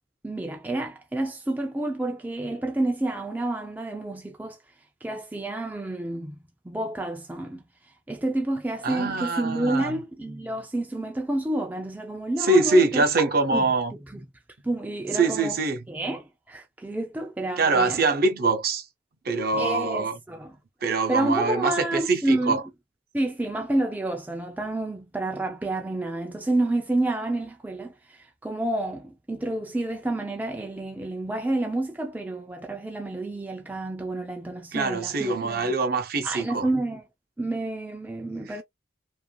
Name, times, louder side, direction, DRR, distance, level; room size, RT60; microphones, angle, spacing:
voice 1, 0.2-4.6 5.0-6.4 6.6-7.6 8.1-13.7 14.1-14.2 14.6-15.6 15.9-18.0 19.5-20.6 21.1-22.6 23.1-35.7 36.2-37.0 37.4-38.6, right 1 dB, 10° right, 0.3 m, -29 dB
voice 2, 8.8-10.0 12.4-13.9 15.1-15.8 17.6-18.8 19.2-20.2 20.8-22.6 34.7-36.7, right 3 dB, 50° right, 0.6 m, -23 dB
2.9 x 2.5 x 2.2 m
head